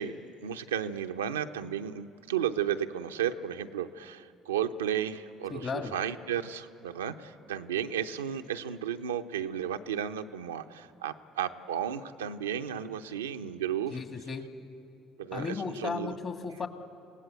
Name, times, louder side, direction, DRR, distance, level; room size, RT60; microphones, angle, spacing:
voice 1, 0.0-14.0 15.2-16.1, right 9 dB, 90° right, 7 dB, 0.7 m, -33 dB
voice 2, 5.5-5.9 13.9-14.5 15.3-16.7, left 5 dB, 45° left, 5 dB, 2.4 m, -35 dB
28.0 x 17.5 x 8.0 m, 2.8 s
hypercardioid pair, 60°, 0 cm